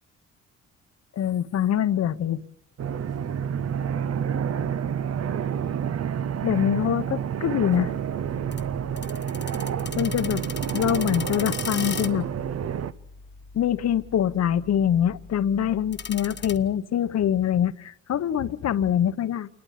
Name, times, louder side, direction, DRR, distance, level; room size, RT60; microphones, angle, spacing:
voice 1, 1.2-2.4 6.4-7.9 9.9-10.4 10.7-12.3 13.5-19.5, left 9 dB, 60° left, 1.0 m, -24 dB
sound 1, 2.8-12.9, right 8 dB, 55° right, 0.9 m, -29 dB
sound 2, 7.7-16.6, left 6 dB, 35° left, 1.3 m, -39 dB
28.0 x 12.0 x 8.3 m
cardioid pair, 90°, 30 cm